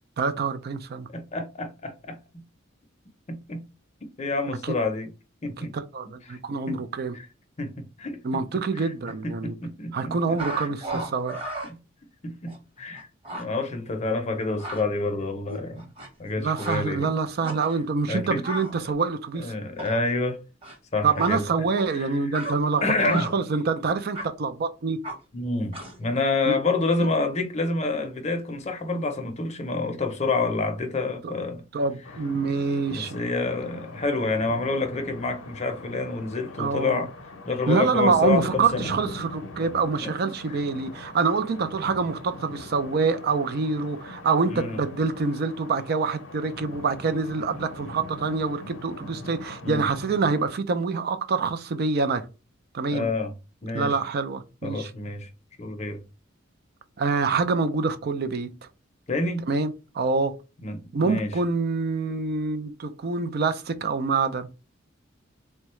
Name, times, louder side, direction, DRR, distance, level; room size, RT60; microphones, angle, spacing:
voice 1, 0.2-1.1 4.6-4.7 5.6-7.2 8.2-9.6 9.9-11.4 16.4-19.5 21.0-25.0 26.5-26.6 31.7-33.2 36.6-37.1 37.7-52.3 52.7-53.1 53.7-54.9 57.0-58.5 59.5-60.3 60.9-64.5, right 4 dB, 50° right, 0.4 m, -26 dB
voice 2, 1.1-2.4 3.3-3.6 4.2-5.1 5.4-5.7 6.3-6.4 6.7-6.9 7.1-7.2 7.6-8.8 9.2-11.1 11.7-11.8 12.2-13.1 13.3-15.9 16.2-17.2 18.1-18.4 19.4-20.4 20.9-22.2 22.8-23.3 25.3-31.6 32.9-37.1 37.5-38.8 40.0-40.1 44.5-44.8 49.6-49.8 52.9-53.3 53.6-53.9 54.6-55.3 55.6-56.0 59.1-59.5 60.6-61.3, left 3 dB, 35° left, 0.6 m, -28 dB
sound 1, 10.4-11.7 12.5-12.6 12.9-13.0 13.2-13.4 14.3-14.8 15.5-16.3 16.6-16.8 17.4-17.7 18.4-18.7 19.7-20.1 20.6-20.7 21.1-21.3 21.7-21.8 22.3-22.6 23.0-23.4 24.1-24.3 25.0-25.2 25.7-26.0, right 1 dB, 30° right, 1.1 m, -34 dB
sound 2, 32.0-50.5, left 2 dB, 75° left, 0.6 m, -42 dB
3.6 x 2.2 x 3.0 m
head